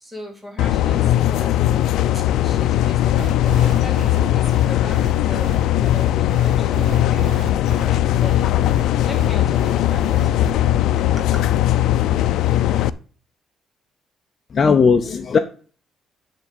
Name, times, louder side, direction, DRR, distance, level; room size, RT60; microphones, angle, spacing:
voice 1, 0.0-7.3 7.8-8.6 9.0-10.6 11.2-11.3, left 1 dB, 5° right, 1 dB, 2.4 m, -37 dB
sound 1, 0.6-12.9, left 12 dB, 85° left, 0.4 m, -19 dB
sound 2, 3.2-10.5, right 7 dB, 60° right, 1.0 m, -35 dB
voice 2, 14.5-15.4, left 5 dB, 40° left, 8 dB, 0.6 m, -16 dB
10.0 x 3.6 x 7.1 m, 0.41 s
cardioid pair, 140°, 0 cm